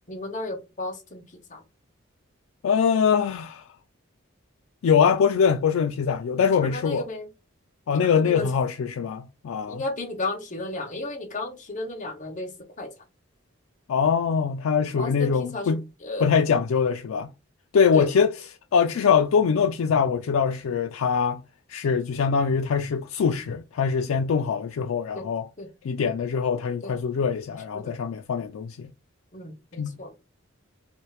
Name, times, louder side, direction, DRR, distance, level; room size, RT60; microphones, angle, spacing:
voice 1, 0.1-1.6 6.4-7.3 8.0-8.5 9.7-12.9 15.0-16.3 17.9-18.1 25.1-25.2 25.6-25.7 26.8-26.9 27.7-27.9 29.3-30.1, left 2 dB, 35° left, 1.0 m, -34 dB
voice 2, 2.6-3.7 4.8-7.0 7.9-9.8 13.9-15.8 16.2-17.3 17.7-18.3 18.7-21.4 21.7-25.5 25.8-28.9 29.8-30.0, left 6 dB, 80° left, 0.3 m, -23 dB
3.1 x 2.7 x 3.2 m
head